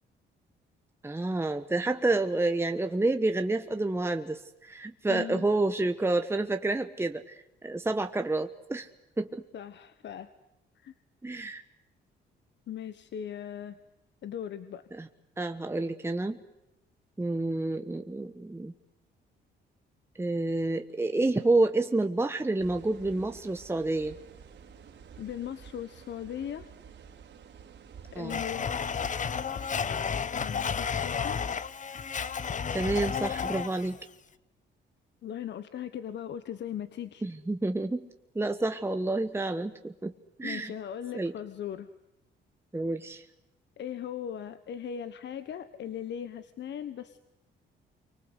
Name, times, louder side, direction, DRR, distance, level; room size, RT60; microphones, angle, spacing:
voice 1, 1.0-8.9 9.2-9.4 11.2-11.6 14.9-15.1 15.4-16.4 17.2-18.7 20.2-24.2 28.1-28.4 32.7-34.0 37.2-38.1 38.3-40.1 40.4-40.7 41.1-41.3 42.7-43.2, right 2 dB, 10° right, 7 dB, 1.2 m, -29 dB
voice 2, 5.1-5.5 9.5-10.3 10.7-10.9 12.7-13.8 14.2-14.9 25.2-26.7 28.1-28.7 30.3-31.5 35.2-37.3 40.4-41.9 43.8-47.2, left 9 dB, 65° left, 12 dB, 1.3 m, -39 dB
sound 1, 22.6-29.8, right 7 dB, 65° right, 3.6 m, -51 dB
Domestic sounds home sounds, 28.3-34.0, left 6 dB, 40° left, 1.0 m, -32 dB
27.0 x 24.5 x 8.2 m, 0.93 s
cardioid pair, 90°, 20 cm